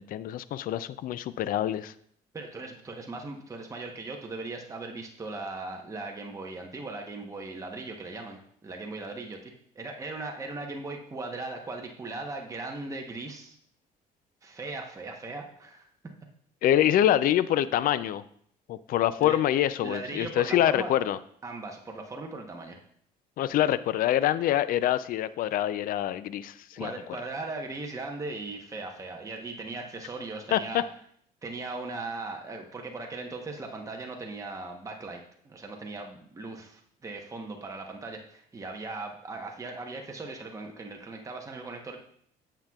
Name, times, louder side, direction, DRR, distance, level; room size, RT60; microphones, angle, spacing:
voice 1, 0.0-1.9 16.6-18.2 18.7-21.2 23.4-26.9 30.5-30.8, left 12 dB, 55° left, 15 dB, 0.4 m, -25 dB
voice 2, 2.3-13.6 14.4-15.9 19.2-19.4 19.8-21.0 21.4-22.8 26.8-30.8 31.4-42.0, right 3 dB, 20° right, 2 dB, 0.9 m, -38 dB
8.8 x 7.3 x 2.3 m, 0.64 s
cardioid pair, 110°, 17 cm